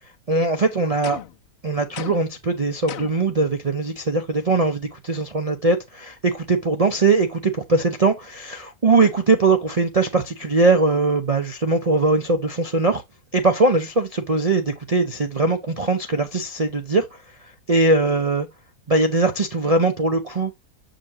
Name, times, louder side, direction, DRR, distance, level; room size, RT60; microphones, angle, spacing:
voice 1, 0.3-1.2 1.6-13.0 13.3-18.5 18.9-20.5, right 3 dB, 50° right, 0.4 m, -21 dB
sound 1, 1.0-1.5 2.0-2.4 2.9-3.3, left 10 dB, 80° left, 0.5 m, -35 dB
7.5 x 5.0 x 2.8 m
omnidirectional pair, 1.7 m